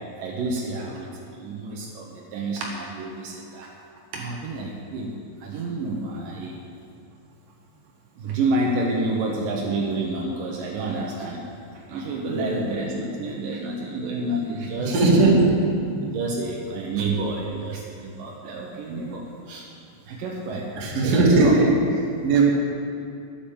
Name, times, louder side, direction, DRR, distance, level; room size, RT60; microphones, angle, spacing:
voice 1, 0.2-3.7 4.1-5.1 5.4-6.6 8.2-11.4 11.9-15.1 16.1-19.7 20.1-20.7 21.0-21.7, right 2 dB, 85° right, -1 dB, 1.9 m, -29 dB
voice 2, 12.3-12.7 14.9-15.5 20.8-21.7 22.2-22.4, right 3 dB, 50° right, -3 dB, 2.2 m, -18 dB
10.5 x 8.9 x 7.0 m, 2.4 s
omnidirectional pair, 5.5 m